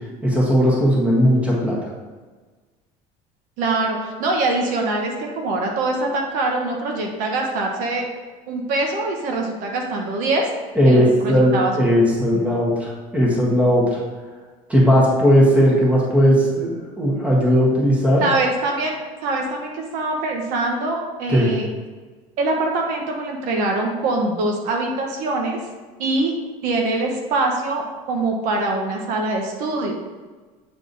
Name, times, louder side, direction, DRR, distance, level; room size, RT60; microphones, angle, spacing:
voice 1, 0.2-1.8 10.7-14.0 14.7-18.2 21.3-21.5, equal, 10° right, -4 dB, 1.5 m, -17 dB
voice 2, 3.6-8.1 8.5-10.5 10.9-11.9 18.2-19.0 19.2-21.7 22.4-25.6 26.0-26.3 26.6-29.9, right 2 dB, 65° right, 1 dB, 1.2 m, -23 dB
8.2 x 3.6 x 4.0 m, 1.4 s
cardioid pair, 160°, 15 cm